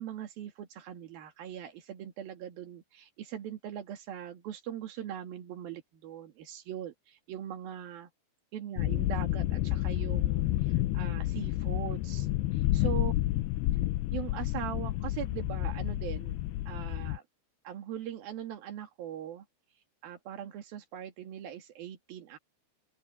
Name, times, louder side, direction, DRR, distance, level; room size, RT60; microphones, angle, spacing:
voice 1, 0.0-8.1 8.5-12.3 12.5-13.1 14.1-16.4 16.7-17.2 17.6-19.5 20.0-22.4, right 10 dB, 55° right, 3.6 m, -41 dB
sound 1, 8.8-17.2, left 16 dB, 90° left, 2.3 m, -30 dB
open air
omnidirectional pair, 5.4 m